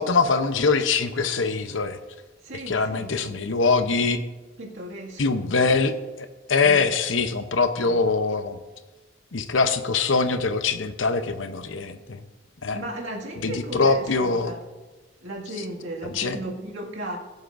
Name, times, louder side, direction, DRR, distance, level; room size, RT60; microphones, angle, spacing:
voice 1, 0.0-2.0 2.5-4.2 5.2-8.6 9.3-12.2 12.6-12.8 13.4-14.5 16.1-16.4, left 4 dB, 80° left, 0.8 m, -23 dB
voice 2, 2.4-3.4 4.6-5.7 6.6-6.9 7.8-8.0 12.7-14.6 15.2-17.2, right 1 dB, 80° right, 2.1 m, -36 dB
21.5 x 8.1 x 2.6 m
head